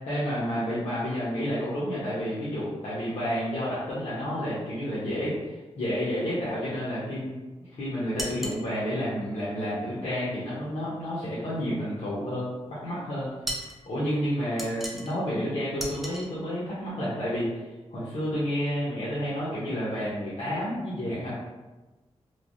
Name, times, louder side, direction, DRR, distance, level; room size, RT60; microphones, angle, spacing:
voice 1, 0.1-13.3 13.9-17.6 17.9-21.3, equal, 70° left, -10 dB, 0.7 m, -30 dB
sound 1, 8.2-8.6 13.5-13.8 14.6-15.2 15.8-16.3, equal, ahead, 0.4 m, -35 dB
3.1 x 2.0 x 2.5 m, 1.2 s
wide cardioid pair, 150°, 11 cm